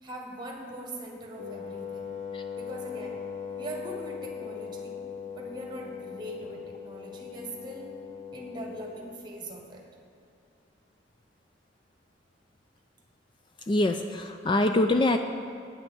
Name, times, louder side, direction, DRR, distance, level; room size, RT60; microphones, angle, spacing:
voice 1, 0.0-2.2 2.6-3.2 3.5-5.0 5.3-7.9 8.3-9.9, right 1 dB, 25° right, 1 dB, 1.6 m, -41 dB
Wind instrument woodwind instrument, 1.4-9.0, left 6 dB, 50° left, 1.2 m, -39 dB
voice 2, 13.6-15.2, left 2 dB, 25° left, 6 dB, 0.3 m, -24 dB
9.1 x 6.2 x 8.4 m, 2.5 s
head